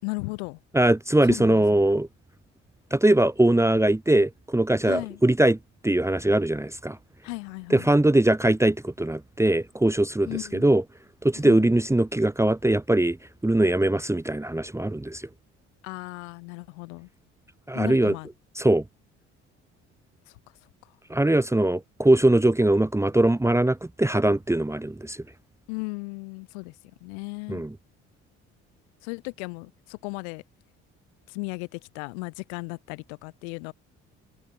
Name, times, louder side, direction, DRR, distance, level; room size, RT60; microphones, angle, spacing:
voice 1, 0.0-0.6 1.2-1.8 4.8-5.2 7.2-7.9 10.3-10.6 11.4-11.7 15.8-17.1 17.7-18.3 20.3-20.4 20.8-20.9 25.7-26.8 27.0-27.6 29.0-30.4 31.3-33.7, left 34 dB, 75° left, 4.0 m, -36 dB
voice 2, 0.7-2.1 2.9-5.6 5.8-7.0 7.7-10.8 11.2-13.2 13.4-15.3 17.7-18.2 18.6-18.8 21.1-25.2 27.5-27.7, right 1 dB, 10° right, 1.0 m, -21 dB
hypercardioid pair, 50°, 34 cm